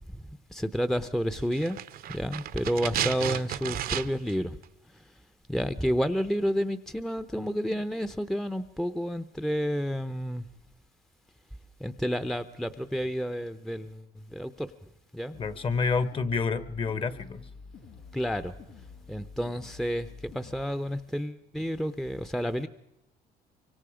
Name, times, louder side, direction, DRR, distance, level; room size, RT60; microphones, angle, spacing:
voice 1, 0.1-1.8 2.1-4.6 4.9-5.0 5.5-10.5 11.8-14.7 15.1-15.4 18.1-18.5 19.1-22.7, equal, ahead, 10 dB, 0.7 m, -30 dB
sound 1, 1.5-4.4 4.6-4.7, right 11 dB, 60° right, 0.8 m, -33 dB
sound 2, 15.3-20.6, left 4 dB, 90° left, 3.0 m, -48 dB
voice 2, 15.4-17.4, left 4 dB, 30° left, 15 dB, 1.2 m, -28 dB
25.0 x 24.5 x 5.0 m, 0.80 s
cardioid pair, 110°, 17 cm